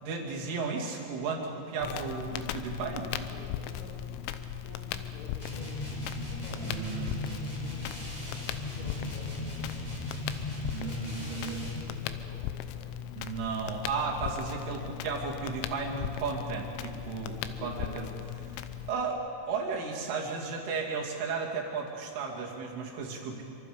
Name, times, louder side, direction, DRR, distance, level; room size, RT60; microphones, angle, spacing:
voice 1, 0.0-3.1 6.6-7.2 10.7-11.6 13.2-18.0 18.9-23.4, right 4 dB, 70° right, -1 dB, 4.9 m, -34 dB
Crackle, 1.8-18.9, left 11 dB, 90° left, 3.5 m, -38 dB
voice 2, 3.3-8.2 8.6-10.0 10.8-12.9 17.5-18.3, left 2 dB, 65° left, -2 dB, 6.9 m, -50 dB
sound 1, 5.4-11.9, left 1 dB, 10° left, 5.3 m, -38 dB
28.0 x 25.0 x 5.2 m, 2.6 s
omnidirectional pair, 5.8 m